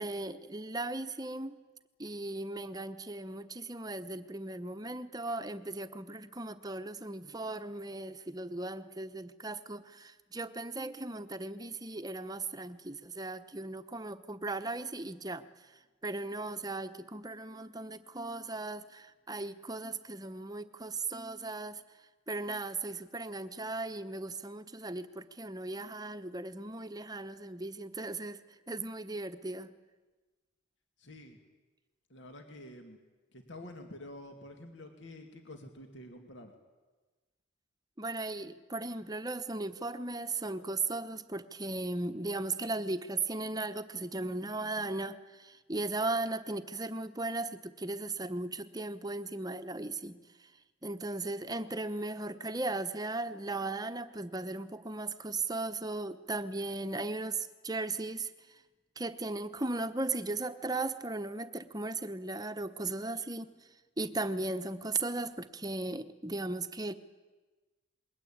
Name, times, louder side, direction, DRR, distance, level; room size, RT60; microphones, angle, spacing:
voice 1, 0.0-1.6 2.0-15.5 16.0-21.8 22.3-29.7 38.0-50.5 50.8-58.6 59.0-63.5 64.0-66.9, right 2 dB, 20° right, 10 dB, 1.0 m, -37 dB
voice 2, 31.0-31.4 32.1-33.0 33.3-36.6, left 1 dB, 60° left, 4 dB, 2.5 m, -48 dB
27.5 x 22.0 x 8.8 m, 1.2 s
head